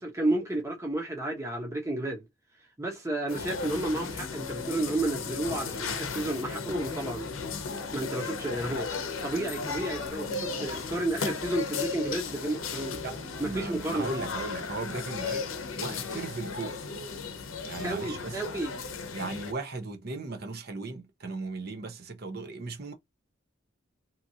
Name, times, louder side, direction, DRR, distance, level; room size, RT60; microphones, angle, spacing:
voice 1, 0.0-2.2 2.8-7.3 7.9-8.9 9.2-13.0 13.4-14.1 17.8-18.8, right 1 dB, 15° right, 0.9 m, -31 dB
sound 1, 3.3-19.5, left 4 dB, 90° left, 0.7 m, -35 dB
voice 2, 13.0-16.8 17.7-18.4 19.1-22.9, right 3 dB, 50° right, 0.8 m, -37 dB
2.8 x 2.5 x 2.7 m
head